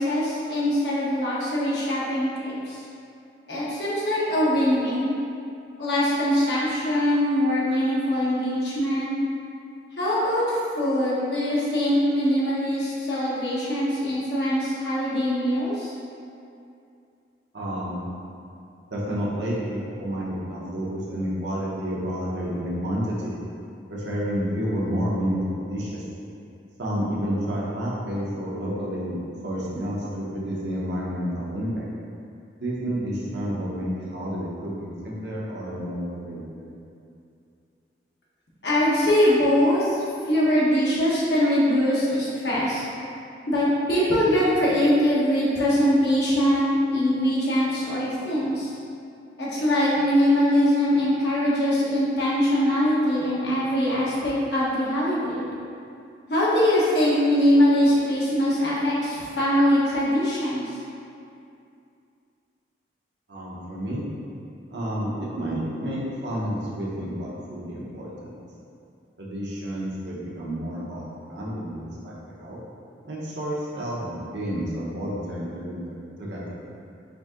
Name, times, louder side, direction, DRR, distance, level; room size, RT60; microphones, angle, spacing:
voice 1, 0.0-2.8 3.5-5.1 5.8-9.1 10.0-15.9 38.6-40.0 40.3-42.8 43.5-48.7 49.4-55.5 56.3-60.7, equal, 70° left, -8 dB, 1.2 m, -22 dB
voice 2, 17.5-18.0 18.9-23.3 23.9-26.0 26.8-31.8 32.6-36.7 63.3-64.0 64.7-65.1 65.3-68.3 69.2-71.0 71.3-72.1 72.4-72.6 73.0-75.8 76.2-76.6, equal, 75° right, -5 dB, 1.0 m, -30 dB
4.9 x 2.7 x 3.7 m, 2.6 s
head